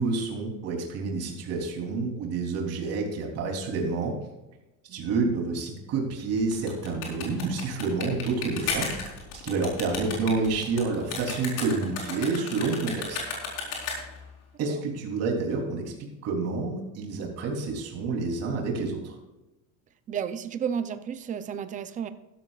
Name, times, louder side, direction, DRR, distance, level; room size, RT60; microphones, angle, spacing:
voice 1, 0.0-4.2 4.9-8.9 9.4-13.2 14.6-19.1, right 4 dB, 40° right, 0 dB, 3.4 m, -29 dB
sound 1, 6.4-14.3, left 4 dB, 50° left, 4.5 m, -34 dB
voice 2, 20.1-22.1, right 8 dB, 20° right, 11 dB, 0.5 m, -32 dB
15.5 x 13.0 x 2.4 m, 1.0 s
cardioid pair, 175°, 40 cm